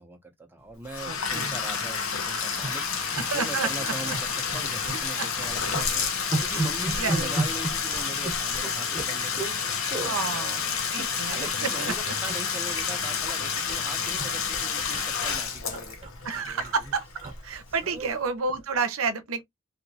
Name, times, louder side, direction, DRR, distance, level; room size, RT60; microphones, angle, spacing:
voice 1, 0.0-9.6 9.9-16.0 16.3-16.9 17.7-18.2, right 2 dB, 10° right, 0.6 m, -41 dB
Bathtub (filling or washing), 0.8-17.6, left 6 dB, 80° left, 0.9 m, -30 dB
voice 2, 1.1-1.5 3.2-4.1 5.2-5.3 6.5-6.6 7.0-7.3 10.0-11.9 16.2-17.0 17.4-19.4, right 5 dB, 80° right, 0.7 m, -30 dB
sound 1, 1.9-2.1 2.6-3.3 3.6-3.8 4.1-5.0 5.3-9.6 9.9-10.1 10.7-11.5 11.8-12.0 12.3-13.4 13.7-18.2 18.6-18.8, right 2 dB, 30° right, 0.9 m, -34 dB
3.1 x 2.8 x 2.7 m
head